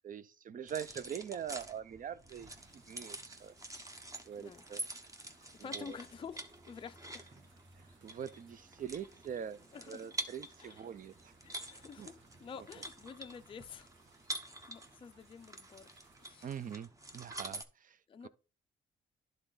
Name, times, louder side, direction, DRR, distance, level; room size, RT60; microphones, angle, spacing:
voice 1, 0.0-3.5 4.2-4.8 5.6-6.0 7.8-9.6 9.9-11.3 12.0-12.1 16.4-18.3, right 8 dB, 40° right, 0.5 m, -43 dB
sound 1, 0.7-17.6, right 1 dB, 15° right, 1.0 m, -47 dB
sound 2, 2.2-16.8, right 4 dB, 70° right, 1.7 m, -69 dB
voice 2, 5.5-7.3 9.7-10.1 10.6-10.9 11.4-13.9 14.7-15.9 16.2-16.5 18.1-18.3, left 6 dB, 25° left, 0.4 m, -49 dB
11.0 x 3.9 x 3.9 m
cardioid pair, 90°, 20 cm